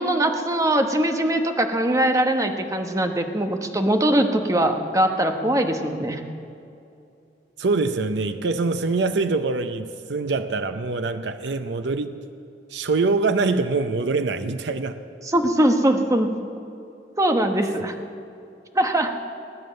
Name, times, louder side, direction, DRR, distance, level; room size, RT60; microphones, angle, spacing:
voice 1, 0.0-6.2 15.3-16.3 17.2-17.9 18.7-19.1, right 1 dB, 20° right, 5 dB, 1.0 m, -21 dB
voice 2, 7.6-12.2 12.7-15.0, right 3 dB, 70° right, 9 dB, 0.6 m, -24 dB
19.5 x 9.6 x 7.7 m, 2.6 s
head